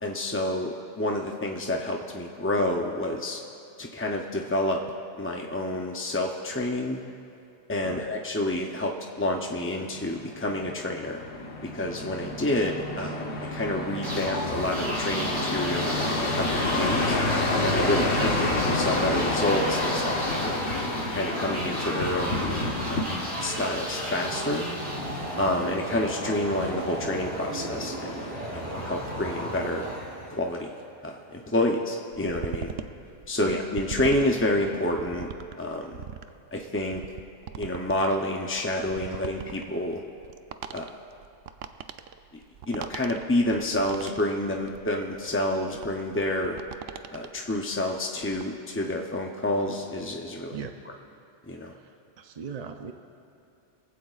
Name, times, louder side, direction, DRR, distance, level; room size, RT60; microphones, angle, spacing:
voice 1, 0.0-3.4 3.8-4.8 5.2-7.0 7.7-11.2 11.6-17.2 17.6-20.6 21.1-22.6 22.9-23.1 23.4-24.7 25.4-29.9 30.3-30.7 31.0-32.7 33.3-35.3 35.6-36.0 36.5-37.0 37.6-40.0 40.7-40.9 42.7-46.6 47.1-50.6 51.5-51.7, left 1 dB, 15° left, 0 dB, 0.5 m, -29 dB
sound 1, 9.6-23.0, left 2 dB, 85° left, 1.6 m, -29 dB
sound 2, 14.0-30.7, equal, 30° right, 2.8 m, -33 dB
sound 3, 32.1-47.6 48.0-48.4, right 8 dB, 70° right, 0.8 m, -40 dB
voice 2, 51.8-52.9, right 6 dB, 45° right, 6 dB, 0.6 m, -39 dB
22.5 x 16.0 x 2.4 m, 2.7 s
omnidirectional pair, 1.1 m